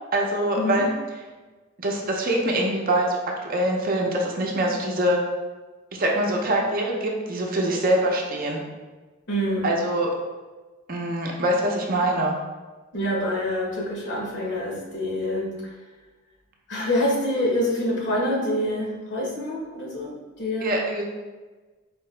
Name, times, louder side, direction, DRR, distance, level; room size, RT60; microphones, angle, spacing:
voice 1, 0.1-0.9 1.8-3.2 3.5-5.2 5.9-8.6 9.6-10.1 10.9-12.3 20.6-21.0, right 1 dB, 45° right, 0 dB, 0.7 m, -24 dB
voice 2, 9.3-9.7 12.9-15.5 16.7-20.7, left 1 dB, 60° left, -2 dB, 1.0 m, -26 dB
4.3 x 2.8 x 3.3 m, 1.3 s
head